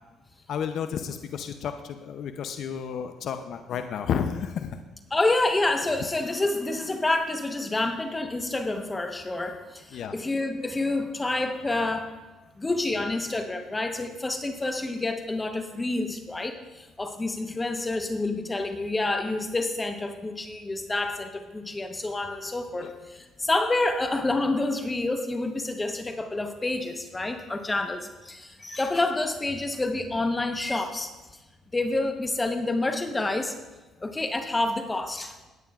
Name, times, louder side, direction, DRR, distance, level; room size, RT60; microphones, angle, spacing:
voice 1, 0.5-4.8 9.9-10.1 22.8-22.9, left 7 dB, 65° left, 8 dB, 0.6 m, -31 dB
voice 2, 5.1-12.1 12.6-31.1 31.7-33.5 34.0-35.4, left 2 dB, 20° left, 6 dB, 1.0 m, -28 dB
17.5 x 9.1 x 2.4 m, 1.1 s
supercardioid pair, 70°, 0 cm